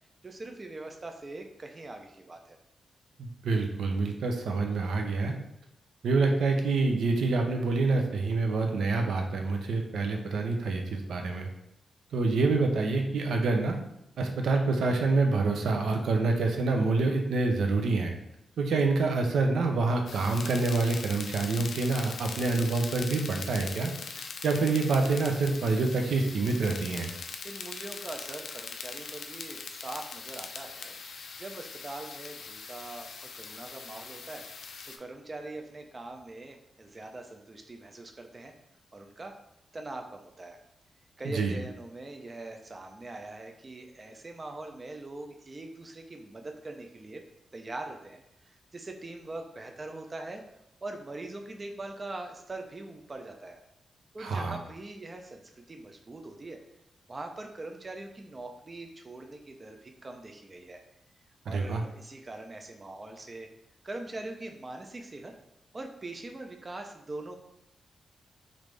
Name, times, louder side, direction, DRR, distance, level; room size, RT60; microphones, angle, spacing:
voice 1, 0.2-2.6 27.4-31.0 31.4-34.5 34.8-38.5 38.9-39.4 39.7-40.6 41.2-47.2 47.5-50.4 50.8-53.6 54.1-56.6 57.1-60.8 61.5-63.5 63.8-65.3 65.7-67.3, right 2 dB, 25° right, 4 dB, 0.3 m, -42 dB
voice 2, 3.2-5.4 6.0-11.5 12.1-13.8 14.2-18.1 18.6-27.1 41.2-41.6 54.2-54.6 61.5-61.8, right 3 dB, 85° right, 3 dB, 0.5 m, -27 dB
sound 1, 20.1-35.0, left 5 dB, 65° left, 0.3 m, -41 dB
3.3 x 2.5 x 3.2 m, 0.79 s
wide cardioid pair, 145°, 0 cm